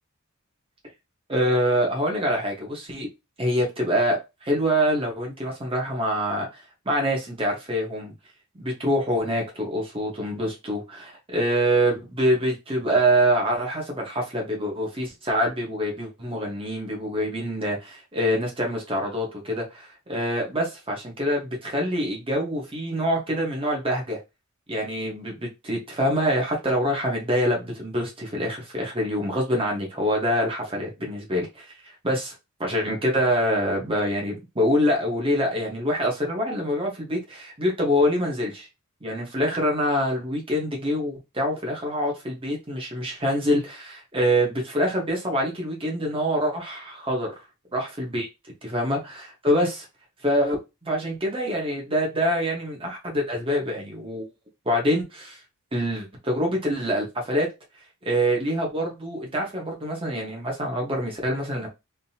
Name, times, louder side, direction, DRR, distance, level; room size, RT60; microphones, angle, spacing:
voice 1, 1.3-3.1 3.4-4.2 4.4-6.6 6.8-8.1 8.6-24.2 24.7-31.7 32.0-32.3 32.6-38.7 39.0-47.3 47.7-48.3 48.6-49.9 50.2-50.6 50.8-54.3 54.6-55.4 55.7-57.5 58.0-61.7, equal, 25° right, -1 dB, 1.4 m, -25 dB
3.8 x 3.0 x 2.9 m, 0.24 s
head